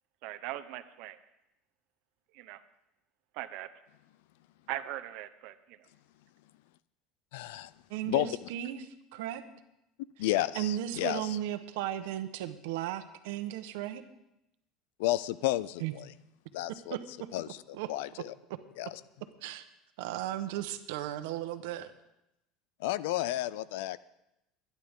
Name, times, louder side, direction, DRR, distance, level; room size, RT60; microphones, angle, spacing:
voice 1, 0.2-1.2 2.3-2.6 3.3-3.7 4.7-5.8, right 15 dB, 60° right, 9 dB, 0.9 m, -40 dB
voice 2, 7.3-7.7 8.1-8.5 10.2-11.4 15.0-16.1 16.5-17.0 17.3-18.3 18.8-19.0 22.8-24.0, left 15 dB, 90° left, 18 dB, 0.4 m, -32 dB
voice 3, 7.9-8.8 9.1-9.4 10.5-14.0 15.8-15.9 16.9-17.3 17.8-17.9 18.5-18.6 19.4-19.6 20.0-21.9, right 12 dB, 85° right, 9 dB, 1.1 m, -35 dB
24.5 x 10.5 x 3.7 m, 0.87 s
cardioid pair, 170°, 0 cm